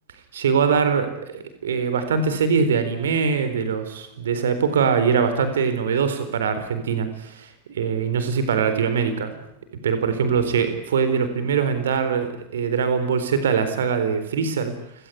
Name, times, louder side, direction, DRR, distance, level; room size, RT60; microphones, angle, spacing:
voice 1, 0.3-1.1 1.3-7.5 7.7-9.3 9.8-14.7, right 6 dB, 65° right, 10 dB, 4.0 m, -22 dB
29.0 x 18.0 x 10.0 m, 0.78 s
figure-of-eight pair, 90°, 0 cm